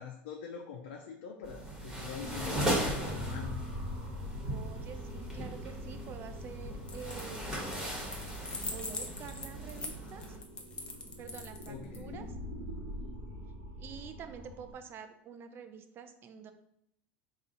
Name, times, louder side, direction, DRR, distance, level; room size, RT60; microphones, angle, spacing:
voice 1, 0.0-3.6 11.7-12.3, left 7 dB, 80° left, 1 dB, 0.5 m, -44 dB
sound 1, 1.4-10.4, right 1 dB, 10° right, 1.3 m, -38 dB
sound 2, 2.2-14.7, left 1 dB, 75° right, 1.2 m, -44 dB
voice 2, 4.5-7.8 8.6-10.3 11.2-12.3 13.8-16.5, right 7 dB, 35° right, 8 dB, 0.5 m, -47 dB
sound 3, 6.8-7.4 7.7-12.0, left 2 dB, 15° left, 0.7 m, -42 dB
4.1 x 2.4 x 3.8 m, 0.76 s
supercardioid pair, 115°, 6 cm